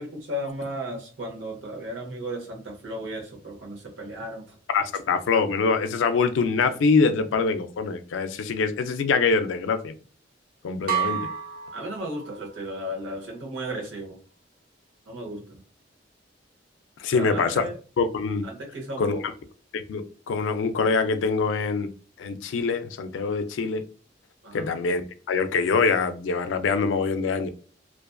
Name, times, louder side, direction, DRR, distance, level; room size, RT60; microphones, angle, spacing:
voice 1, 0.0-4.6 11.7-14.2 15.1-15.6 17.1-17.8 18.4-19.3 24.4-24.7, right 1 dB, 85° right, 0.8 m, -35 dB
voice 2, 4.7-9.9 10.6-11.3 17.0-17.7 18.0-18.4 19.0-19.3 19.7-21.9 22.2-23.8 24.5-27.5, left 4 dB, 85° left, 0.3 m, -24 dB
sound 1, 10.9-12.7, right 7 dB, 50° right, 0.5 m, -30 dB
2.4 x 2.4 x 2.2 m
head